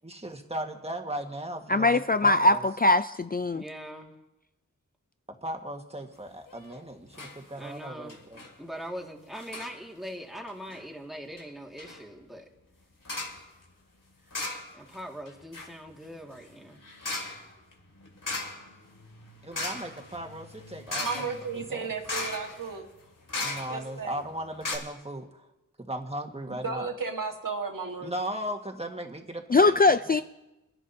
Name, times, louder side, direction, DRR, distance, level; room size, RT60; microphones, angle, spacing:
voice 1, 0.0-2.6 5.4-8.4 19.4-21.2 21.5-21.8 23.4-25.5 25.9-26.9 28.0-29.8 30.1-30.2, right 1 dB, 20° right, 3 dB, 1.6 m, -37 dB
voice 2, 1.7-3.6 29.5-30.2, left 2 dB, 30° left, 10 dB, 0.4 m, -21 dB
voice 3, 3.5-4.1 7.6-8.2 8.6-12.5 14.7-16.8, equal, ahead, -1 dB, 2.1 m, -41 dB
sound 1, 6.5-6.8 7.1-7.4 7.7-7.8 8.1-8.5 9.4-9.8 10.5-10.8 11.4-11.5 11.8-12.0 13.0-13.4 14.3-15.0 15.3-24.0 24.3-24.4 24.6-24.8, left 2 dB, 80° left, 2.5 m, -37 dB
voice 4, 21.0-22.8 23.7-24.2 26.5-28.1, right 5 dB, 80° right, 2 dB, 1.7 m, -34 dB
26.5 x 11.0 x 2.8 m, 0.96 s
wide cardioid pair, 65°, 32 cm